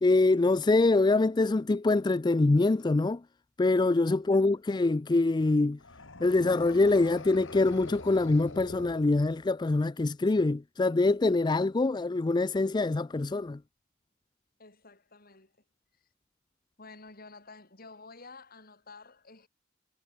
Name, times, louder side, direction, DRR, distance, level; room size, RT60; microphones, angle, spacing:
voice 1, 0.0-3.2 3.6-5.8 6.2-13.6, left 2 dB, 20° left, 0.4 m, -24 dB
sound 1, 5.8-9.7, left 2 dB, 85° left, 3.4 m, -44 dB
voice 2, 14.6-15.5 16.8-19.5, left 3 dB, 50° left, 6.2 m, -51 dB
head